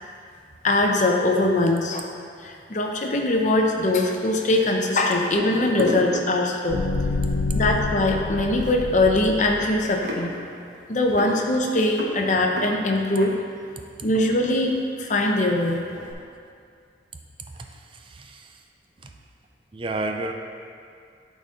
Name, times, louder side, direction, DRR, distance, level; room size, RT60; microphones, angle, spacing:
voice 1, 0.6-2.1 2.4-6.8 7.5-10.3 10.9-13.4 14.0-15.8, left 2 dB, 40° left, 1 dB, 0.7 m, -22 dB
sound 1, 5.3-6.9 7.6-7.8 8.1-15.2 15.5-16.1, equal, 75° right, 1.0 m, -34 dB
sound 2, 6.7-9.8, left 3 dB, 70° left, 0.4 m, -27 dB
voice 2, 17.5-18.6 19.0-19.1 19.7-20.3, right 2 dB, 30° right, 3 dB, 0.4 m, -32 dB
12.0 x 4.2 x 3.7 m, 2.3 s
head